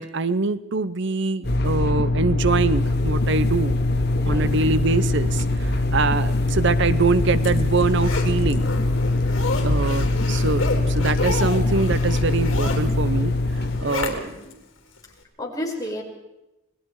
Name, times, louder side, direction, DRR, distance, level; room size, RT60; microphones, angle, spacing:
voice 1, 0.0-3.8 4.3-8.7 9.6-13.3 13.6-14.3, right 4 dB, 60° right, 15 dB, 0.8 m, -24 dB
sound 1, 1.4-13.8, left 2 dB, 55° left, 2.0 m, -22 dB
voice 2, 4.1-4.5 9.4-9.8 13.8-14.3 15.4-16.0, left 1 dB, 20° left, -2 dB, 5.3 m, -33 dB
Zipper (clothing), 6.9-14.5 15.0-15.1, left 3 dB, 70° left, 3.7 m, -31 dB
28.5 x 20.5 x 4.8 m, 0.94 s
head